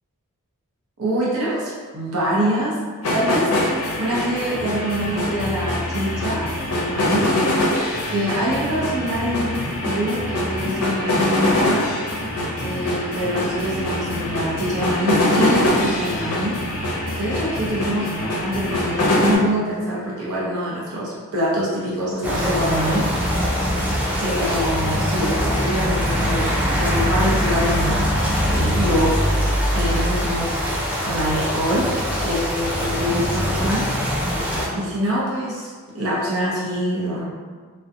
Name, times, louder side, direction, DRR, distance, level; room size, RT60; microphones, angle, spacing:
voice 1, 1.0-2.8 3.1-3.5 4.0-7.4 8.1-11.9 12.6-16.6 17.2-23.1 24.2-28.0 28.4-29.1 29.7-30.6 31.0-33.9 34.7-37.2, equal, 75° right, -6 dB, 0.6 m, -25 dB
sound 1, 3.0-19.4, left 1 dB, 80° left, 0.5 m, -23 dB
sound 2, 22.2-34.7, equal, 5° right, 0.4 m, -22 dB
2.6 x 2.1 x 2.4 m, 1.5 s
head